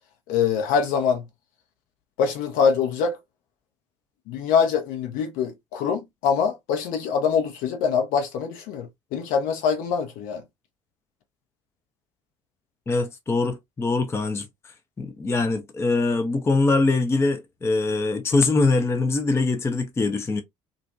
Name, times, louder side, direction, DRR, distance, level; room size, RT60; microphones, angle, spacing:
voice 1, 0.3-1.2 2.2-3.2 4.3-10.4, left 6 dB, 60° left, 0.8 m, -24 dB
voice 2, 12.9-14.5 15.0-20.4, left 3 dB, 15° left, 0.5 m, -23 dB
2.5 x 2.1 x 2.4 m
figure-of-eight pair, 55°, 16 cm